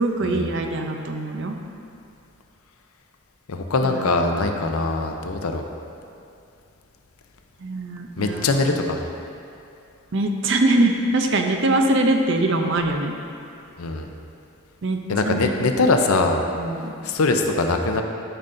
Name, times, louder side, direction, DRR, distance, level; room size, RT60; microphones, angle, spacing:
voice 1, 0.0-1.6 3.8-4.2 4.6-4.8 7.6-8.8 10.1-13.1 14.8-15.0 15.2-15.7 16.5-16.9, right 2 dB, 55° right, 4 dB, 0.6 m, -23 dB
voice 2, 3.5-5.6 8.2-9.0 13.8-14.1 15.1-16.4 17.0-18.0, left 3 dB, 80° left, 4 dB, 0.6 m, -22 dB
12.0 x 5.6 x 2.6 m, 2.6 s
head